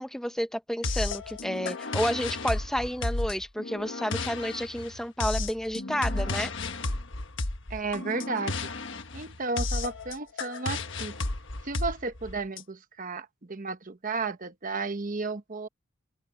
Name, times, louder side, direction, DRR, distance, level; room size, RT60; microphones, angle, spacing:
voice 1, 0.0-6.5, equal, ahead, 0.7 m, -30 dB
sound 1, 0.8-12.6, left 2 dB, 60° left, 1.4 m, -33 dB
voice 2, 7.7-8.7 9.1-11.1 11.6-15.7, right 3 dB, 40° right, 1.0 m, -33 dB
open air
head